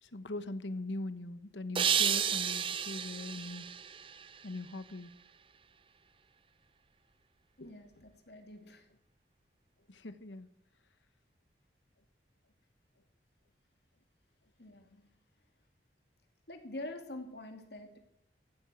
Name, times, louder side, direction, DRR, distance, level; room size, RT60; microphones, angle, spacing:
voice 1, 0.0-3.7 4.4-5.1 7.6-7.7 9.9-10.5, left 2 dB, 85° left, 13 dB, 1.1 m, -41 dB
sound 1, 1.8-4.9, right 8 dB, 30° right, 0.5 m, -32 dB
voice 2, 7.6-8.9 14.6-15.1 16.5-18.0, left 1 dB, 65° left, 5 dB, 2.6 m, -46 dB
15.5 x 9.0 x 8.4 m, 0.77 s
head